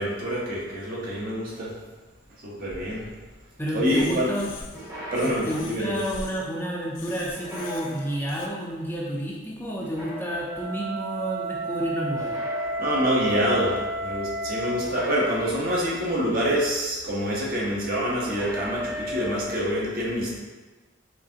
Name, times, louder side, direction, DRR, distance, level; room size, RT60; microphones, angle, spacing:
voice 1, 0.0-1.8 2.4-3.1 3.7-4.3 5.1-6.0 12.8-20.4, equal, 50° right, -4 dB, 1.1 m, -26 dB
voice 2, 3.6-4.5 5.2-12.4, equal, 10° left, -4 dB, 0.6 m, -30 dB
sound 1, 3.8-4.9 5.1-6.5 6.9-8.5, left 4 dB, 85° left, 0.5 m, -42 dB
sound 2, 4.7-5.9 7.3-8.5 9.8-10.8 12.2-13.3 14.8-16.1 18.2-19.4, left 1 dB, 15° right, 0.9 m, -38 dB
Wind instrument woodwind instrument, 10.3-15.0, right 1 dB, 85° right, 1.5 m, -31 dB
4.9 x 3.4 x 2.8 m, 1.3 s
head